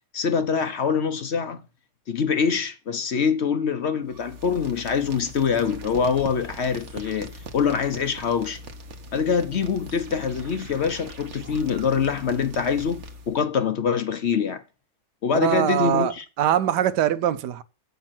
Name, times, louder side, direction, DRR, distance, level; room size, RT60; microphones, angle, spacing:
voice 1, 0.1-1.6 2.1-8.6 9.1-14.6 15.2-16.2, left 6 dB, 50° left, 0.9 m, -24 dB
sound 1, 4.0-13.5, right 1 dB, 50° right, 1.2 m, -41 dB
voice 2, 15.3-17.6, right 11 dB, 80° right, 1.3 m, -23 dB
8.2 x 7.7 x 5.9 m
omnidirectional pair, 1.8 m